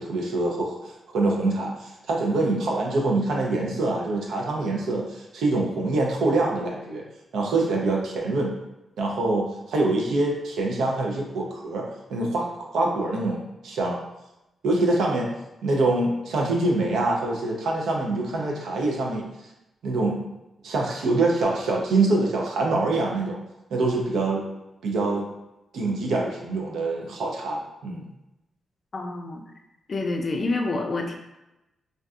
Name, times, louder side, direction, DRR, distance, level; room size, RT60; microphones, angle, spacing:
voice 1, 0.0-7.0 7.3-8.5 9.0-14.0 14.6-15.3 15.6-19.3 19.8-20.2 20.6-23.4 23.7-24.4 24.8-25.3 25.7-28.0, right 2 dB, 90° right, -1 dB, 0.5 m, -25 dB
voice 2, 28.9-29.4 29.9-31.1, left 2 dB, 40° left, 2 dB, 0.4 m, -27 dB
2.6 x 2.2 x 2.3 m, 0.93 s
cardioid pair, 110°, 0 cm